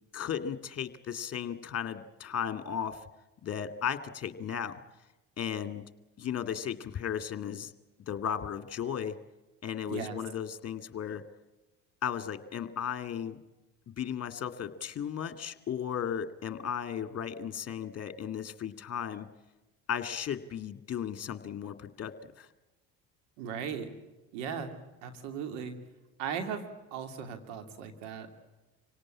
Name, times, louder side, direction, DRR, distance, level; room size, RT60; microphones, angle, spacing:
voice 1, 0.1-3.0 3.4-4.8 5.4-5.8 6.2-7.7 8.1-9.2 9.6-11.2 12.0-13.4 13.9-19.3 19.9-22.5, left 8 dB, 40° left, 9 dB, 2.2 m, -35 dB
voice 2, 9.9-10.2 23.4-23.9 24.3-24.7 25.0-25.7 26.2-28.4, right 7 dB, 85° right, 7 dB, 2.9 m, -37 dB
26.5 x 18.0 x 8.7 m, 1.1 s
supercardioid pair, 80°, 37 cm